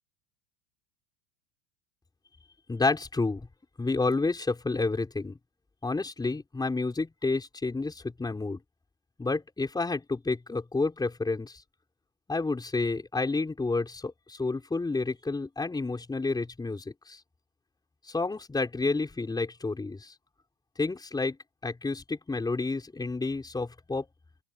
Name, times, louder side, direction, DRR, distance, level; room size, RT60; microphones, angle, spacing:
voice 1, 2.7-3.5 3.8-5.4 5.8-8.6 9.2-11.6 12.3-17.2 18.0-20.1 20.8-21.4 21.6-24.1, left 3 dB, 10° left, 5.5 m, -30 dB
open air
supercardioid pair, 150°, 48 cm